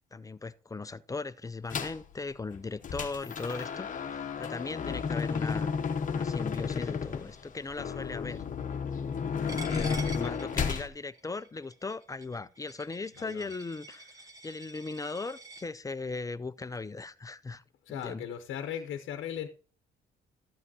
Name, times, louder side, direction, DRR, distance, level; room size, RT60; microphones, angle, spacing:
voice 1, 0.0-5.7 6.1-8.4 9.4-14.2 14.4-17.6 17.9-18.3, left 3 dB, 15° left, 0.4 m, -38 dB
sound 1, 1.7-2.0 2.5-10.9, left 6 dB, 40° left, 0.8 m, -33 dB
voice 2, 2.9-3.3 9.8-10.6 13.1-13.5 17.8-19.5, left 9 dB, 75° left, 0.8 m, -39 dB
Coin (dropping), 9.5-15.6, right 3 dB, 15° right, 1.2 m, -48 dB
12.5 x 7.5 x 2.8 m
cardioid pair, 90°, 20 cm